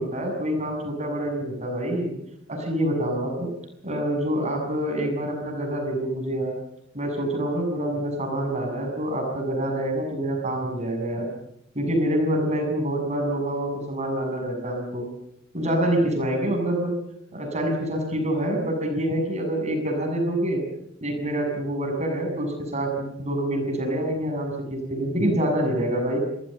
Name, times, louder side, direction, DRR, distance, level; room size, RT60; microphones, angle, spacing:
voice 1, 0.0-2.1 2.5-3.5 3.8-6.6 6.9-11.3 11.8-15.1 15.5-17.0 17.3-20.6 21.0-26.2, right 1 dB, 35° right, 3 dB, 6.8 m, -26 dB
27.5 x 15.5 x 8.9 m, 0.79 s
head